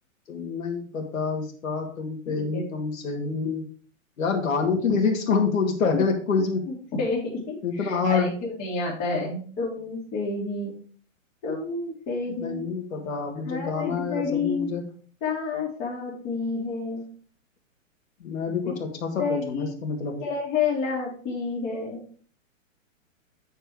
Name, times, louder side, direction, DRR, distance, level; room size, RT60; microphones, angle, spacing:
voice 1, 0.3-3.6 4.2-6.7 7.6-8.3 12.3-14.8 18.2-20.2, left 5 dB, 80° left, 1 dB, 2.3 m, -27 dB
voice 2, 6.7-10.8 11.4-12.6 13.4-14.7 15.2-17.0 18.5-18.8 19.2-19.8 20.2-22.0, left 4 dB, 25° left, -3 dB, 2.4 m, -29 dB
8.9 x 4.6 x 4.8 m, 0.43 s
hypercardioid pair, 165°, 40 cm